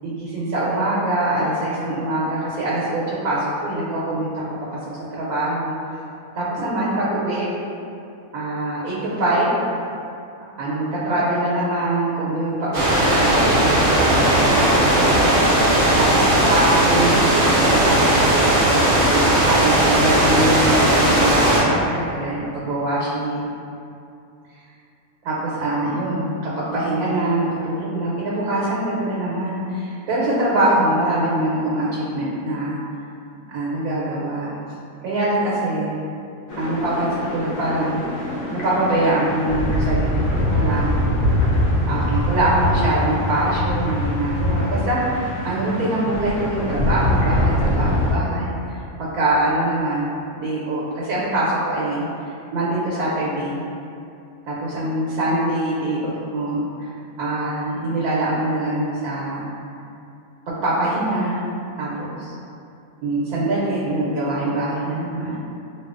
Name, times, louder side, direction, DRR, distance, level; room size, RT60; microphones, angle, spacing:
voice 1, 0.0-4.4 5.1-5.8 6.3-7.5 8.3-9.6 10.6-17.2 17.6-18.4 19.1-23.5 25.2-32.8 33.5-34.5 35.0-36.0 36.6-38.0 38.6-41.2 41.9-50.1 50.3-53.6 54.5-56.9 57.2-59.5 60.5-61.5 61.8-62.3 63.0-65.4, right 1 dB, 85° right, -7 dB, 1.1 m, -23 dB
sound 1, 12.7-21.6, right 1 dB, 50° right, 0.6 m, -17 dB
sound 2, 36.5-48.1, left 1 dB, 75° left, 1.0 m, -23 dB
2.7 x 2.2 x 2.4 m, 2.6 s
omnidirectional pair, 1.5 m